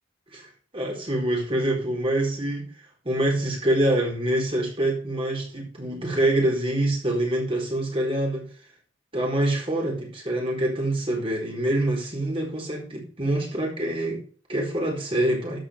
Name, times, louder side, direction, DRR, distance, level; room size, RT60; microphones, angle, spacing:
voice 1, 0.7-2.6 3.0-8.5 9.1-15.6, right 1 dB, 30° right, 4.0 m, -25 dB
12.5 x 9.1 x 3.4 m
head